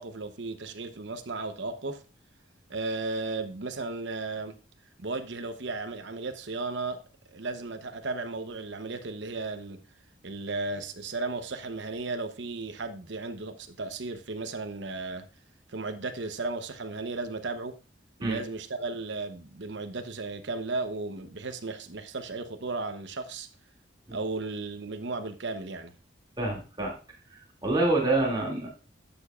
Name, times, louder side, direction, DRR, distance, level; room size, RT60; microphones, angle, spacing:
voice 1, 0.0-2.0 2.7-4.5 5.0-7.0 7.3-9.8 10.2-15.2 15.7-17.8 18.2-23.5 24.1-25.9, right 3 dB, 70° right, 0.9 m, -35 dB
voice 2, 26.4-26.9 27.3-28.7, right 2 dB, 20° right, 2.5 m, -27 dB
11.5 x 6.8 x 2.4 m
head